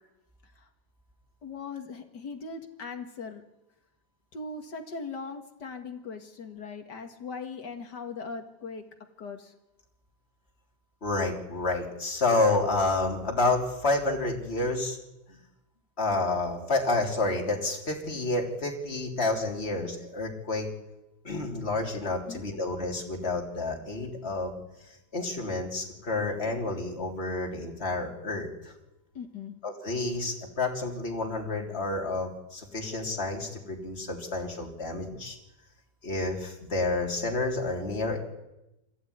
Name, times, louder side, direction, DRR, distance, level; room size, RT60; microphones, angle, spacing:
voice 1, 1.4-3.4 4.3-8.8 9.2-9.5 22.3-22.6 29.1-29.5, left 4 dB, 45° left, 5 dB, 1.4 m, -39 dB
voice 2, 11.0-15.0 16.0-20.7 21.2-24.6 25.1-28.7 29.6-35.4 36.0-38.2, left 2 dB, 15° left, 1 dB, 3.2 m, -29 dB
26.5 x 15.5 x 9.6 m, 0.94 s
omnidirectional pair, 4.6 m